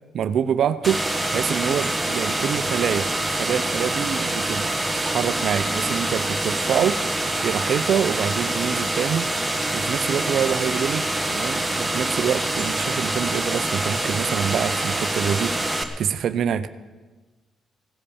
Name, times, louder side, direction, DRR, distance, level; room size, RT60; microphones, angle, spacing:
voice 1, 0.1-9.3 9.7-11.1 11.3-16.7, right 8 dB, 65° right, 13 dB, 0.6 m, -26 dB
sound 1, 0.8-15.8, right 1 dB, 5° right, 1.4 m, -25 dB
16.5 x 10.0 x 7.1 m, 1.3 s
cardioid pair, 90°, 0 cm